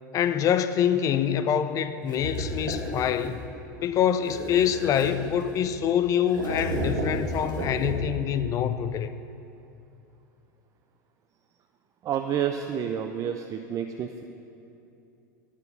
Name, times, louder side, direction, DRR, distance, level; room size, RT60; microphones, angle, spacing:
voice 1, 0.1-3.4 3.8-9.1, left 9 dB, 35° left, 12 dB, 0.4 m, -25 dB
sound 1, 2.1-3.4 4.2-5.8 6.3-8.3, equal, 85° right, 1.4 m, -32 dB
voice 2, 12.0-14.2, right 8 dB, 35° right, 6 dB, 0.4 m, -29 dB
10.0 x 4.4 x 6.7 m, 2.7 s
hypercardioid pair, 90°, 10 cm